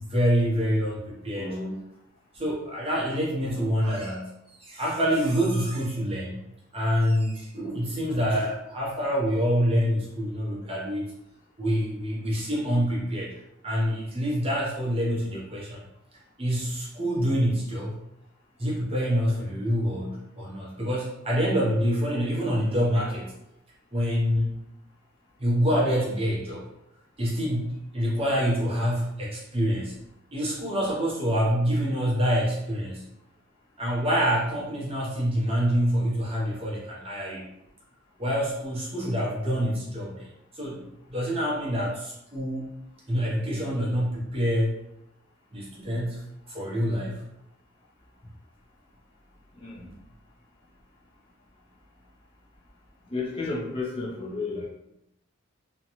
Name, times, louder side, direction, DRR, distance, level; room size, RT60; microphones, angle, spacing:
voice 1, 0.1-1.8 2.3-4.3 4.6-6.4 6.7-11.1 11.6-13.3 13.6-15.8 16.4-18.0 18.6-23.3 23.9-24.5 25.4-26.6 27.2-30.0 30.3-33.0 33.8-37.5 38.2-40.3 40.5-42.7 43.1-44.8 45.5-46.2 46.5-47.2, equal, 25° right, -5 dB, 0.6 m, -26 dB
voice 2, 53.1-54.7, left 3 dB, 25° left, -5 dB, 0.5 m, -32 dB
2.5 x 2.1 x 2.9 m, 0.84 s
head